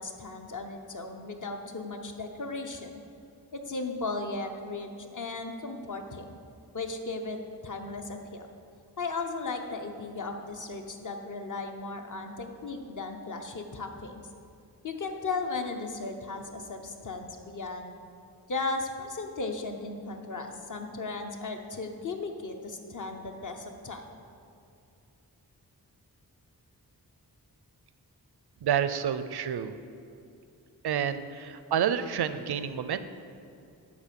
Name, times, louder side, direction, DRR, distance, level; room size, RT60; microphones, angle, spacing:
voice 1, 0.0-3.0 3.5-6.2 6.7-8.4 9.0-14.2 14.8-17.9 18.5-24.1, left 3 dB, 50° left, 4 dB, 0.9 m, -36 dB
voice 2, 28.6-29.7 30.8-33.0, right 8 dB, 85° right, 12 dB, 0.5 m, -29 dB
11.0 x 4.2 x 7.5 m, 2.6 s
wide cardioid pair, 115°, 38 cm